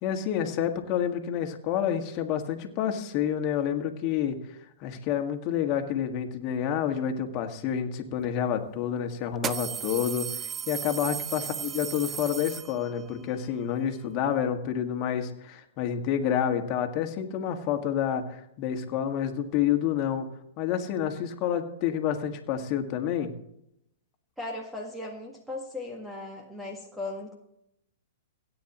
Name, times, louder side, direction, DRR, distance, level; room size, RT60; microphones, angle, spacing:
voice 1, 0.0-4.4 4.8-10.3 10.7-20.3 20.6-23.3, left 9 dB, 40° left, 4 dB, 1.8 m, -29 dB
sound 1, 8.2-8.3 9.3-13.1, right 8 dB, 20° right, 0.4 m, -35 dB
voice 2, 24.4-27.3, left 2 dB, 5° right, 1 dB, 1.7 m, -37 dB
17.0 x 9.5 x 3.0 m, 0.77 s
hypercardioid pair, 125°, 0 cm